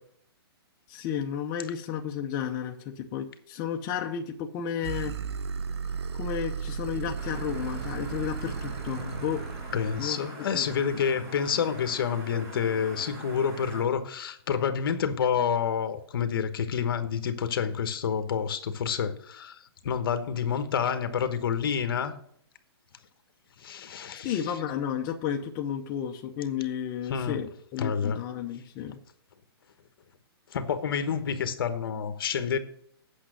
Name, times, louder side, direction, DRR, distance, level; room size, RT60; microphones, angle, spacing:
voice 1, 0.9-5.1 6.2-9.4 10.0-10.7 10.9-11.0 24.2-29.0, left 9 dB, 20° left, 0.6 m, -32 dB
sound 1, 4.8-10.0, right 6 dB, 90° right, 0.8 m, -34 dB
sound 2, 7.1-13.8, right 1 dB, 20° right, 1.7 m, -44 dB
voice 2, 9.7-22.2 23.6-24.4 27.1-27.4 27.8-28.2 30.5-32.6, left 7 dB, 60° left, 1.1 m, -28 dB
8.6 x 6.2 x 6.3 m
hypercardioid pair, 165°, 13 cm